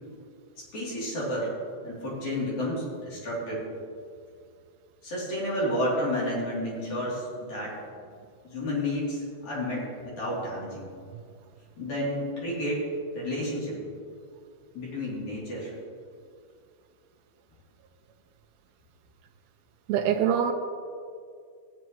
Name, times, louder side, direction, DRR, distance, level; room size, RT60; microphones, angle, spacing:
voice 1, 0.7-1.5 1.8-3.6 5.0-7.8 8.4-10.9 11.8-12.9 13.1-13.8 14.7-15.7, equal, 70° left, -7 dB, 4.6 m, -31 dB
voice 2, 19.9-20.5, right 8 dB, 80° right, 4 dB, 1.7 m, -24 dB
16.5 x 9.1 x 3.1 m, 2.2 s
omnidirectional pair, 3.4 m